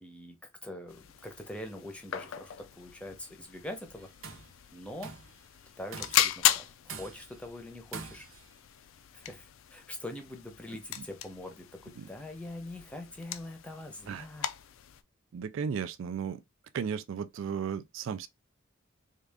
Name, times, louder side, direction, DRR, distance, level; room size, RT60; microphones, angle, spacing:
voice 1, 0.0-4.1 4.7-5.1 5.8-8.3 9.1-14.5, left 1 dB, 5° left, 0.7 m, -43 dB
sound 1, 0.9-15.0, left 11 dB, 75° left, 0.4 m, -36 dB
Tools, 4.0-4.5 5.0-5.4 5.9-6.4 6.9-7.4 7.9-8.5, right 5 dB, 90° right, 0.8 m, -44 dB
voice 2, 15.3-16.4 16.7-18.3, right 7 dB, 70° right, 0.3 m, -35 dB
3.6 x 2.4 x 3.4 m
head